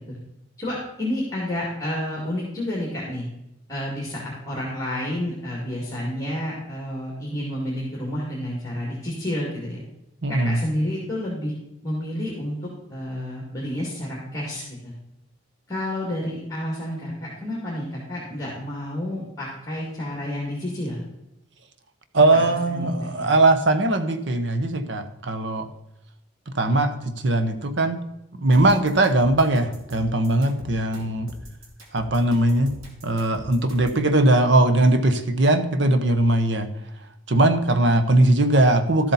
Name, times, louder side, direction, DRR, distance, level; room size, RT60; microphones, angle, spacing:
voice 1, 0.6-3.2 3.7-9.8 10.3-11.5 11.8-14.9 15.7-21.0 22.3-23.3, left 1 dB, 15° left, -4 dB, 2.4 m, -30 dB
voice 2, 10.2-10.6 22.1-25.7 26.5-28.0 28.4-31.3 31.9-32.8 33.0-36.7 37.3-39.1, right 2 dB, 60° right, 9 dB, 0.9 m, -20 dB
sound 1, 28.5-34.0, equal, 85° right, 2.5 m, -42 dB
12.5 x 8.0 x 4.2 m, 0.88 s
head